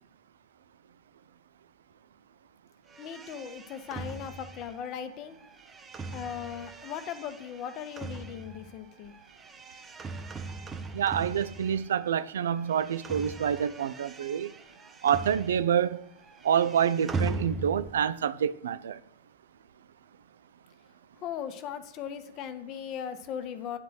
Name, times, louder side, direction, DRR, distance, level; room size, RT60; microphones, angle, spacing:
sound 1, 2.9-12.2 12.4-15.9 16.2-18.1, right 3 dB, 20° right, 0.6 m, -40 dB
voice 1, 3.0-5.4 6.1-9.1 21.2-23.8, left 8 dB, 40° left, 0.8 m, -38 dB
voice 2, 10.9-14.5 15.0-16.0 16.4-19.0, right 8 dB, 65° right, 0.3 m, -27 dB
9.8 x 4.0 x 6.4 m
figure-of-eight pair, 90°, 0 cm